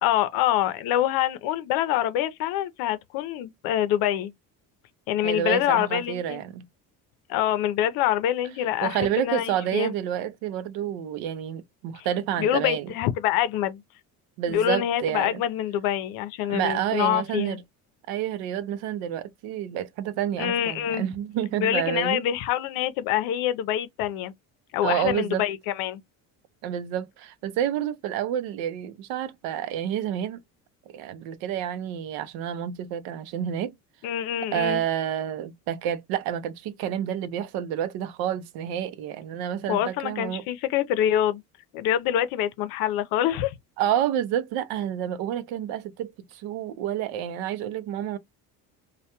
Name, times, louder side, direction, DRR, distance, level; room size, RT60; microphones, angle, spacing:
voice 1, 0.0-4.3 5.1-6.4 7.3-9.9 12.4-13.8 14.5-17.6 20.4-21.0 21.6-24.3 24.7-26.0 34.0-34.8 39.7-41.4 41.7-43.5, left 11 dB, 75° left, 0.6 m, -25 dB
voice 2, 5.2-6.6 8.8-12.9 14.4-15.4 16.5-17.6 18.1-22.2 24.8-25.4 26.6-30.4 30.9-33.8 34.5-40.4 43.8-48.2, right 10 dB, 80° right, 0.6 m, -29 dB
2.2 x 2.2 x 2.8 m
cardioid pair, 175°, 35 cm